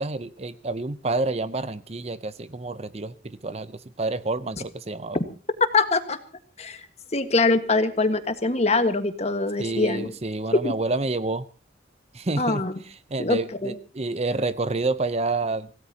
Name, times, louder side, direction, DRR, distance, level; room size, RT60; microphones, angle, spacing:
voice 1, 0.0-5.2 9.6-11.5 12.1-12.6 13.1-15.7, right 3 dB, 35° right, 14 dB, 0.7 m, -28 dB
voice 2, 5.6-6.2 6.6-6.9 7.1-10.1 10.5-10.7 12.4-12.7 13.2-13.7, left 3 dB, 35° left, 9 dB, 1.5 m, -23 dB
25.5 x 17.5 x 2.9 m, 0.35 s
head